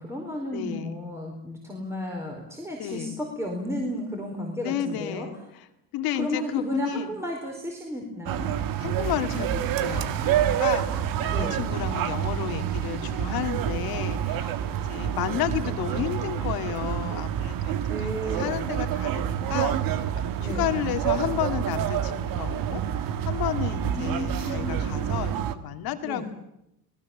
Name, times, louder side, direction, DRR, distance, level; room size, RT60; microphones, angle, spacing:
voice 1, 0.0-5.3 6.1-8.5 11.3-11.6 17.9-18.5 20.4-20.7 23.8-25.0 26.0-26.3, equal, 5° right, 0 dB, 4.5 m, -33 dB
voice 2, 0.5-0.9 2.8-3.2 4.6-5.4 5.9-7.1 8.8-18.1 18.4-19.8 20.2-26.3, left 11 dB, 60° left, 7 dB, 2.3 m, -32 dB
sound 1, 8.3-25.6, right 10 dB, 55° right, 1.7 m, -28 dB
28.0 x 20.0 x 7.2 m, 0.81 s
cardioid pair, 120°, 39 cm